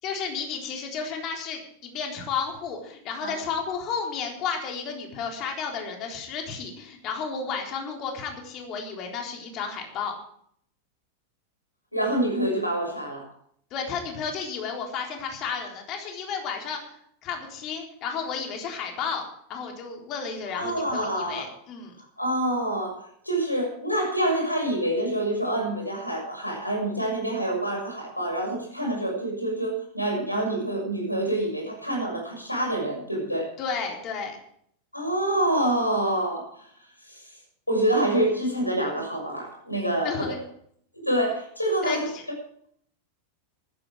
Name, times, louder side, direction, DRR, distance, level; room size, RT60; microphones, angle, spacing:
voice 1, 0.0-10.1 13.7-19.2 19.5-22.0 33.6-34.4 40.0-40.4 41.8-42.2, left 6 dB, 35° left, 2 dB, 4.0 m, -32 dB
voice 2, 11.9-13.3 20.6-21.5 22.2-23.0 23.2-33.5 34.9-36.7 37.1-37.2 37.7-40.4 40.9-42.1, right 1 dB, 85° left, 2 dB, 6.1 m, -26 dB
15.0 x 13.0 x 4.9 m, 0.65 s
figure-of-eight pair, 90°, 0 cm